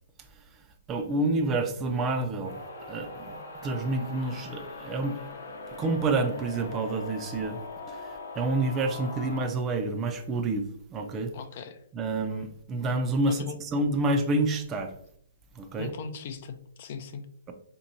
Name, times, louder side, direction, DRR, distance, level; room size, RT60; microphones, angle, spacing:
voice 1, 0.9-2.6 2.9-3.4 3.6-5.2 5.8-7.6 7.9-11.3 11.9-14.9 15.6-15.9, right 2 dB, 20° right, 0.4 m, -28 dB
sound 1, 2.4-9.4, left 3 dB, 75° left, 0.9 m, -41 dB
voice 2, 11.3-11.8 13.3-13.6 15.8-17.3, left 6 dB, 45° left, 0.4 m, -39 dB
3.4 x 3.0 x 2.6 m
hypercardioid pair, 150°, 0 cm